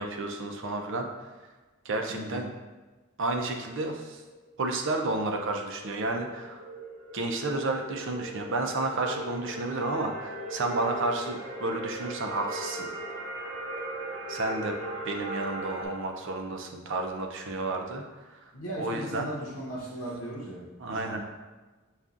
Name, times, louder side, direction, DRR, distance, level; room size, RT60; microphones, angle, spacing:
voice 1, 0.0-1.4 1.8-2.5 3.2-4.2 4.6-6.6 7.1-12.9 14.3-14.8 15.0-19.3 20.8-21.2, right 2 dB, 65° right, 3 dB, 0.5 m, -31 dB
voice 2, 2.1-2.5 18.5-21.2, right 1 dB, 70° left, -5 dB, 0.8 m, -37 dB
sound 1, 4.3-15.8, right 1 dB, 40° right, 1.0 m, -39 dB
6.8 x 2.4 x 2.5 m, 1.3 s
head